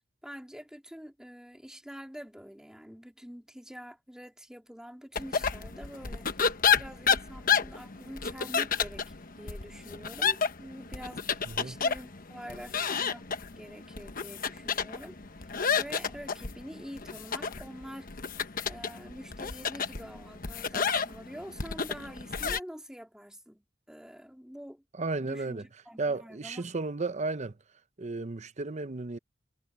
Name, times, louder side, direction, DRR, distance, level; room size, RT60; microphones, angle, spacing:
voice 1, 0.2-6.5 6.7-13.3 13.6-18.1 18.6-24.8 25.2-26.6, equal, 5° right, 2.8 m, -46 dB
sound 1, 5.2-22.6, left 6 dB, 45° left, 1.1 m, -31 dB
voice 2, 11.5-11.8 25.0-25.7 26.0-27.6 28.0-29.2, right 3 dB, 35° right, 0.7 m, -33 dB
head